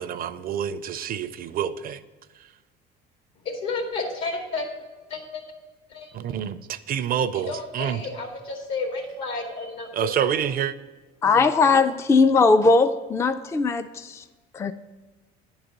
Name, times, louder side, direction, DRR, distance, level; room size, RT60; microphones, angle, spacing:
voice 1, 0.0-2.0 6.1-8.0 9.9-10.7, right 9 dB, 50° right, 14 dB, 0.5 m, -27 dB
voice 2, 3.4-4.7 5.1-5.4 5.9-6.1 7.3-10.3, left 3 dB, 75° left, 2 dB, 2.1 m, -31 dB
voice 3, 11.2-14.2 14.5-14.7, left 4 dB, 15° left, 9 dB, 0.3 m, -19 dB
10.0 x 4.0 x 6.6 m, 1.3 s
supercardioid pair, 90°, 20 cm